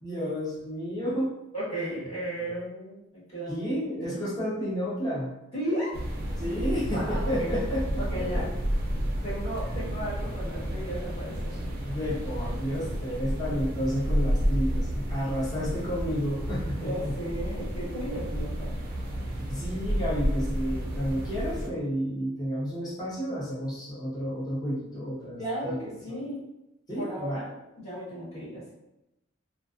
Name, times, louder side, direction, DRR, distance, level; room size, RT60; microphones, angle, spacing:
voice 1, 0.0-1.3 2.3-2.6 3.5-5.3 6.4-8.4 11.7-17.2 19.4-25.9 26.9-27.4, equal, 20° left, -8 dB, 0.7 m, -31 dB
voice 2, 1.5-3.6 4.1-4.4 5.5-5.9 6.9-7.5 8.0-8.4 9.2-11.6 16.8-18.7 25.4-26.4 27.0-28.8, right 1 dB, 35° left, -11 dB, 1.2 m, -35 dB
sound 1, 5.9-21.7, equal, 50° right, 0.4 m, -31 dB
2.4 x 2.3 x 2.4 m, 0.91 s
head